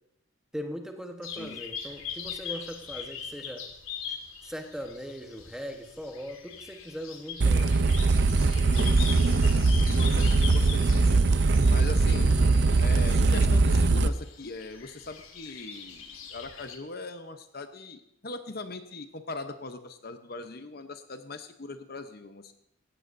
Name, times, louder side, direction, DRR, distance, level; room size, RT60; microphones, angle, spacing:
voice 1, 0.5-3.6 4.1-4.2 4.4-7.8 12.1-12.5, equal, 5° right, 3 dB, 1.1 m, -40 dB
sound 1, 1.2-16.8, left 7 dB, 85° left, 2.0 m, -42 dB
sound 2, 7.4-14.1, right 3 dB, 55° right, 0.5 m, -21 dB
voice 2, 8.7-11.2 11.7-12.3 12.8-22.5, left 3 dB, 45° left, 8 dB, 0.8 m, -40 dB
18.0 x 14.5 x 2.7 m, 0.76 s
head